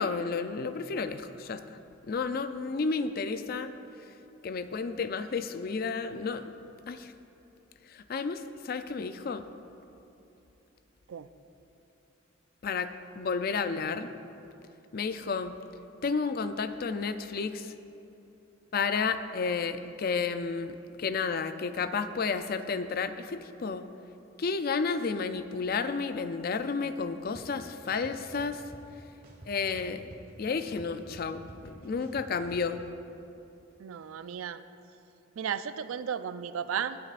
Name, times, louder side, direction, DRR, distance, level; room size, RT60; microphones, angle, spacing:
voice 1, 0.0-1.6 2.1-3.7 4.4-6.5 6.9-7.1 7.9-9.5 12.6-14.1 14.9-15.6 16.0-17.7 18.7-23.9 24.4-28.6 29.5-30.0 30.4-32.8, left 5 dB, 45° left, 10 dB, 0.4 m, -31 dB
sound 1, 27.3-27.4 27.9-28.8 29.2-30.3 30.6-32.7, right 1 dB, 45° right, 1.5 m, -49 dB
voice 2, 33.8-34.6 35.4-37.0, right 8 dB, 90° right, 13 dB, 0.4 m, -34 dB
18.5 x 8.8 x 2.5 m, 2.8 s
head